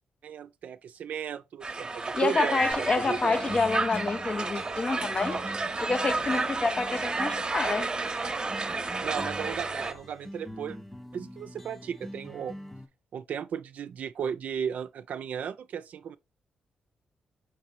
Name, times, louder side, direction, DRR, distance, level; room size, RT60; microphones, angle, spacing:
voice 1, 0.2-3.6 9.0-10.8 11.1-12.5 13.1-16.2, right 8 dB, 70° right, 0.3 m, -35 dB
Crowd, 1.6-9.9, right 3 dB, 30° right, 0.7 m, -31 dB
voice 2, 2.1-5.4 5.8-7.9, left 4 dB, 40° left, 0.4 m, -28 dB
sound 1, 2.6-12.9, equal, 5° left, 0.7 m, -44 dB
sound 2, 2.7-10.0, left 1 dB, 90° left, 3.2 m, -49 dB
5.9 x 3.1 x 2.7 m
cardioid pair, 60°, 3 cm